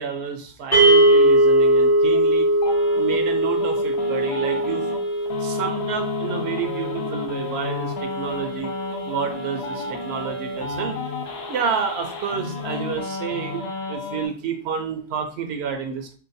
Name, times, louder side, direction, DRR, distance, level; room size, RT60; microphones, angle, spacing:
voice 1, 0.0-2.5 2.9-4.9 5.4-8.7 9.0-11.0 11.5-16.1, right 7 dB, 85° right, 4 dB, 0.8 m, -29 dB
sound 1, 0.7-11.0, right 1 dB, 65° left, 1.8 m, -21 dB
sound 2, 2.6-14.3, left 4 dB, 85° left, 1.0 m, -32 dB
4.8 x 2.2 x 2.6 m, 0.40 s
omnidirectional pair, 1.0 m